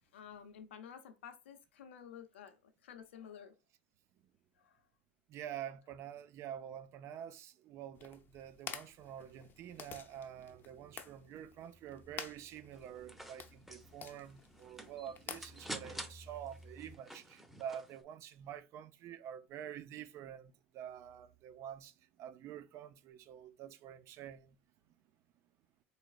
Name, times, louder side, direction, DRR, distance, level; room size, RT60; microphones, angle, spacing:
voice 1, 0.1-3.5 4.6-4.9, left 8 dB, 75° left, 0.7 m, -52 dB
voice 2, 5.3-24.6, right 10 dB, 50° right, 0.5 m, -48 dB
sound 1, 7.9-16.9, left 6 dB, 35° left, 0.6 m, -51 dB
sound 2, 12.7-18.0, right 1 dB, 5° right, 0.8 m, -50 dB
3.8 x 3.3 x 2.4 m
hypercardioid pair, 75°, 6 cm